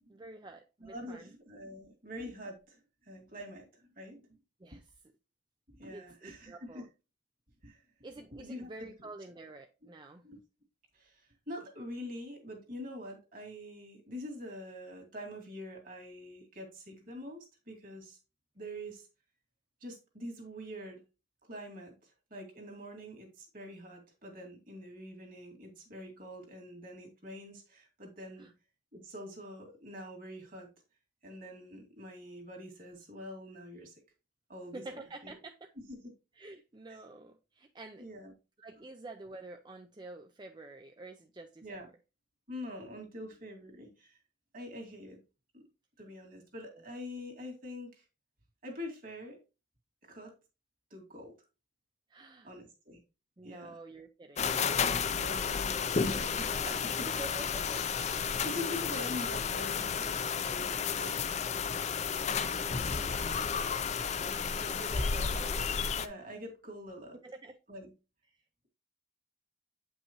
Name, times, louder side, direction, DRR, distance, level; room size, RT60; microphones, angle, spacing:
voice 1, 0.1-1.3 4.6-4.9 5.9-6.9 8.0-10.2 28.4-28.5 34.7-35.7 36.3-38.1 38.6-41.7 46.7-46.8 52.1-52.5 53.4-54.5 55.1-56.8 57.0-57.9 64.5-65.7 67.2-67.6 68.3-68.4, right 2 dB, 25° right, 0.5 m, -48 dB
voice 2, 0.8-4.4 5.7-6.8 7.6-7.8 8.3-9.1 10.2-10.4 10.9-18.2 18.6-19.1 19.8-21.0 21.5-28.5 28.9-30.7 31.2-33.9 34.5-35.4 35.9-36.1 36.9-37.0 38.0-38.3 41.6-41.9 42.5-44.2 44.5-45.2 45.5-45.7 46.0-48.0 48.6-49.4 50.0-50.3 50.9-51.3 52.4-53.0 53.4-53.8 55.1-56.7 58.4-60.1 60.4-60.7 60.9-61.3 62.2-63.8 64.2-64.5 66.0-67.2 67.7-67.9, left 1 dB, 45° right, 2.3 m, -45 dB
sound 1, 54.4-66.1, left 6 dB, 35° left, 0.5 m, -32 dB
8.5 x 5.5 x 3.0 m
head